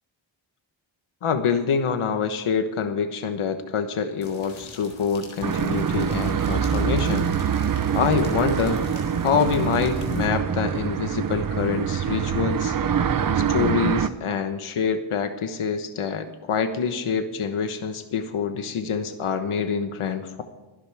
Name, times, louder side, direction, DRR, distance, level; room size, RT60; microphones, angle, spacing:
voice 1, 1.2-7.3 7.9-8.8 9.2-12.8 13.3-20.4, left 6 dB, 85° left, 8 dB, 1.2 m, -26 dB
sound 1, 4.2-10.3, left 2 dB, 70° left, 4.0 m, -41 dB
sound 2, 5.4-14.1, right 7 dB, 45° right, 0.7 m, -24 dB
23.0 x 11.0 x 3.5 m, 1.1 s
wide cardioid pair, 140°, 49 cm